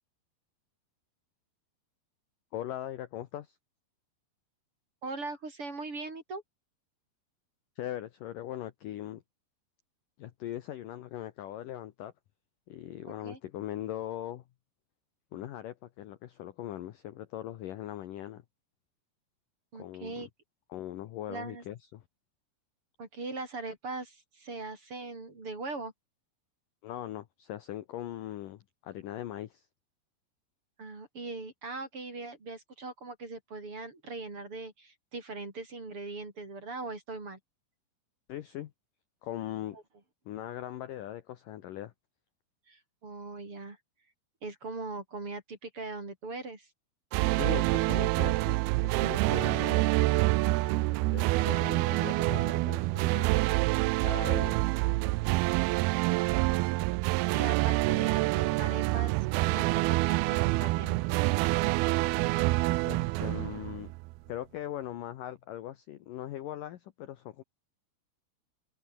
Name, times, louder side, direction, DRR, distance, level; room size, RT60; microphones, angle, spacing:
voice 1, 2.5-3.6 7.8-9.2 10.2-12.1 12.7-14.4 15.3-18.4 19.7-20.3 20.7-22.0 26.8-29.7 38.3-38.7 39.2-39.8 40.3-41.9 47.4-49.9 51.1-53.3 54.0-54.6 62.8-63.9 64.3-67.4, left 12 dB, 70° left, 2.2 m, -40 dB
voice 2, 5.0-6.4 13.1-13.4 19.7-20.3 21.3-21.6 23.0-25.9 30.8-37.4 42.7-43.8 44.4-46.7 57.3-61.0, right 3 dB, 30° right, 5.2 m, -40 dB
sound 1, 47.1-64.2, right 21 dB, 85° right, 2.2 m, -27 dB
open air
omnidirectional pair, 5.0 m